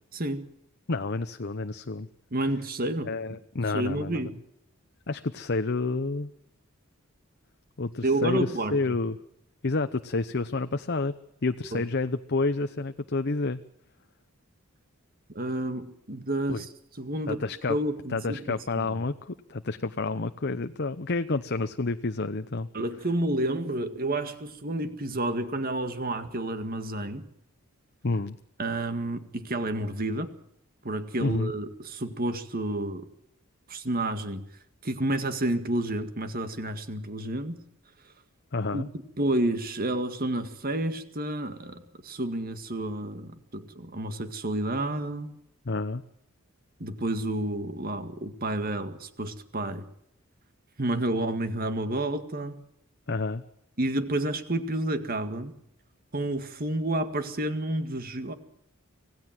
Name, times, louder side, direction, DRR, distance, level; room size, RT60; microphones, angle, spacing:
voice 1, 0.1-0.5 2.3-3.4 3.7-4.3 8.0-8.9 11.7-11.8 15.3-16.7 17.0-17.4 17.7-19.0 22.7-27.3 28.6-30.3 30.8-33.1 33.7-34.4 34.8-37.6 38.7-38.8 39.2-45.3 46.8-49.9 50.8-52.6 53.8-55.5 56.1-58.3, right 1 dB, 40° right, 9 dB, 1.9 m, -30 dB
voice 2, 0.9-2.1 3.0-4.2 5.1-6.3 7.8-9.2 9.6-11.1 11.4-13.6 16.5-16.6 17.3-17.8 18.1-22.7 28.0-28.4 31.2-31.5 38.5-38.9 45.6-46.0 53.1-53.4, left 3 dB, 50° left, 9 dB, 0.8 m, -29 dB
26.0 x 17.5 x 7.6 m, 0.76 s
head